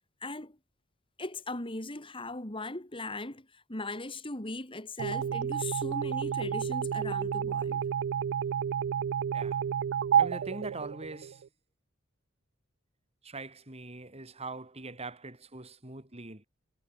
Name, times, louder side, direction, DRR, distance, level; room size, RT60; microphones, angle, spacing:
voice 1, 0.2-0.6 1.2-7.8, left 2 dB, 25° left, 3.3 m, -39 dB
sound 1, 5.0-11.5, right 8 dB, 60° right, 0.3 m, -30 dB
voice 2, 10.2-11.4 13.2-16.5, right 2 dB, 30° right, 3.7 m, -42 dB
head